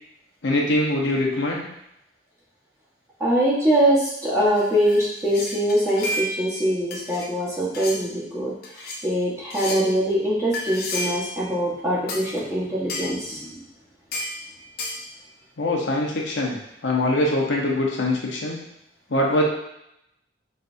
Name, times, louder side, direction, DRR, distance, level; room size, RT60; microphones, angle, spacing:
voice 1, 0.4-1.6 15.6-16.6 16.8-18.6 19.1-19.4, left 1 dB, 80° left, -2 dB, 0.9 m, -23 dB
voice 2, 3.2-8.5 9.0-13.6, equal, 15° right, -7 dB, 1.3 m, -23 dB
sound 1, 4.4-6.6 6.9-7.3 7.7-8.0 8.6-9.0 9.5-9.9 10.5-11.3 12.1-12.3 12.9-13.2 14.1-14.4 14.8-15.0, left 1 dB, 55° left, 0.7 m, -31 dB
5.5 x 3.3 x 2.7 m, 0.80 s
head